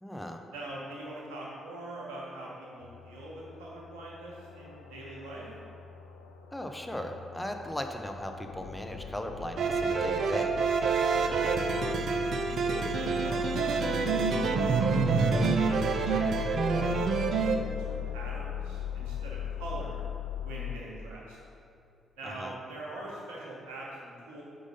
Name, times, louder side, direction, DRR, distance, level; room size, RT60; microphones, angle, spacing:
voice 1, 0.0-0.4 6.5-10.6 22.2-22.6, left 1 dB, 10° left, 4 dB, 0.6 m, -37 dB
voice 2, 0.5-5.4 11.1-11.4 11.7-12.0 12.5-20.0 20.4-21.4 22.2-24.4, right 1 dB, 80° right, -4 dB, 1.1 m, -43 dB
sound 1, 2.8-20.8, left 10 dB, 85° left, 0.3 m, -40 dB
sound 2, 9.6-17.6, right 5 dB, 60° right, 0.4 m, -27 dB
4.8 x 3.9 x 5.3 m, 2.5 s
hypercardioid pair, 40°, 0 cm